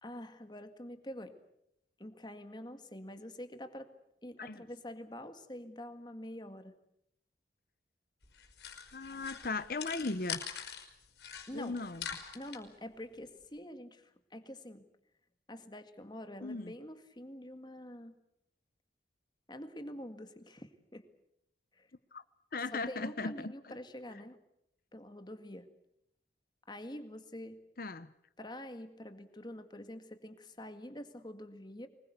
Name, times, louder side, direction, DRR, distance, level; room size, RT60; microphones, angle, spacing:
voice 1, 0.0-1.4 2.0-3.9 4.2-6.7 11.5-11.8 12.3-14.8 15.5-18.1 19.5-21.1 21.7-21.9 22.7-24.4 24.9-25.7 26.7-27.6 28.4-31.9, left 1 dB, 25° left, 8 dB, 1.9 m, -46 dB
sound 1, 8.2-10.9 11.2-12.6, left 8 dB, 70° left, 4.7 m, -44 dB
voice 2, 8.9-10.4 11.5-12.1 16.4-16.7 22.1-22.2 22.5-23.5 27.8-28.1, left 3 dB, 50° left, 13 dB, 0.9 m, -37 dB
24.5 x 21.0 x 8.1 m, 0.77 s
head